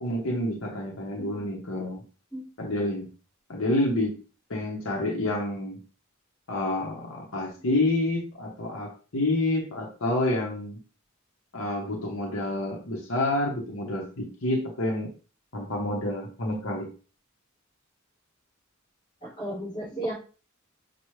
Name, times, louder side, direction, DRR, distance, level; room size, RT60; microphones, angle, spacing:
voice 1, 0.0-2.0 2.6-3.1 3.5-4.2 4.5-5.8 6.5-10.8 11.5-15.1 15.5-16.9, left 1 dB, 70° left, -1 dB, 1.0 m, -28 dB
voice 2, 19.2-20.1, right 1 dB, 20° left, -5 dB, 2.0 m, -34 dB
5.9 x 2.3 x 3.2 m, 0.37 s
head